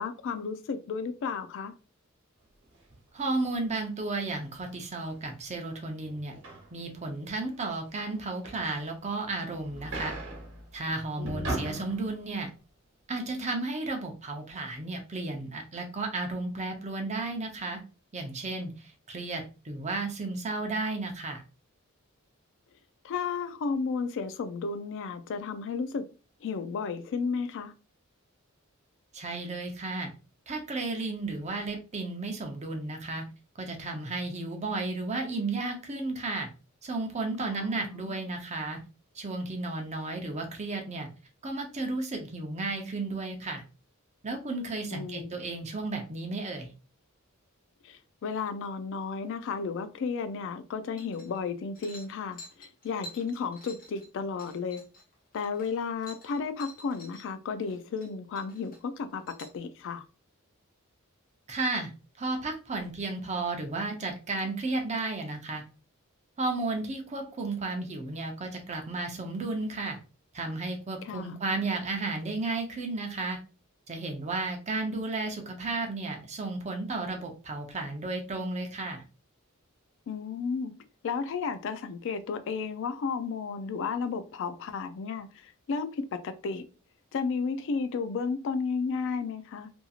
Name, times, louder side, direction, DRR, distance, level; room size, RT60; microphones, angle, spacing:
voice 1, 0.0-1.7 11.2-11.9 23.0-26.1 26.4-27.7 37.4-38.2 44.9-45.3 47.8-54.8 55.3-60.0 71.0-71.4 80.1-80.7 81.0-86.6 87.1-89.7, left 5 dB, 60° left, 0.3 m, -33 dB
sound 1, 2.6-2.9 3.6-3.7 4.6-4.8 5.1-5.4 6.1-9.1 9.4-12.3, right 2 dB, 60° right, 1.1 m, -39 dB
voice 2, 3.1-6.3 6.7-10.2 10.7-12.5 13.1-17.8 18.1-21.4 29.1-30.1 30.5-33.2 33.6-36.5 36.8-38.8 39.1-41.1 41.4-43.6 44.2-46.7 61.5-61.9 62.2-65.6 66.4-70.0 70.3-73.4 73.9-79.0, right 2 dB, 30° right, 0.6 m, -33 dB
sound 2, 51.0-51.5 51.7-57.2 57.6-58.1 58.3-59.6, equal, 45° left, 1.1 m, -49 dB
2.9 x 2.6 x 2.3 m
head